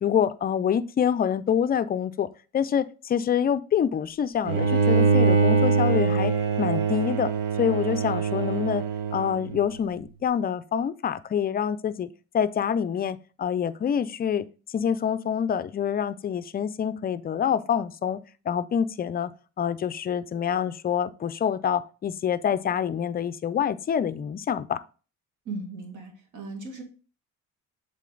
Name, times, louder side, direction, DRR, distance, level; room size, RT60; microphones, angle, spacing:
voice 1, 0.0-2.3 2.5-7.3 7.6-8.8 9.1-12.1 12.3-14.5 14.7-18.2 18.5-19.3 19.6-24.8, left 8 dB, 30° left, 0.4 m, -26 dB
Bowed string instrument, 4.5-9.7, right 5 dB, 85° right, 1.3 m, -23 dB
voice 2, 25.5-26.8, right 3 dB, 65° right, 2.1 m, -37 dB
7.4 x 3.8 x 3.8 m
cardioid pair, 110°, 33 cm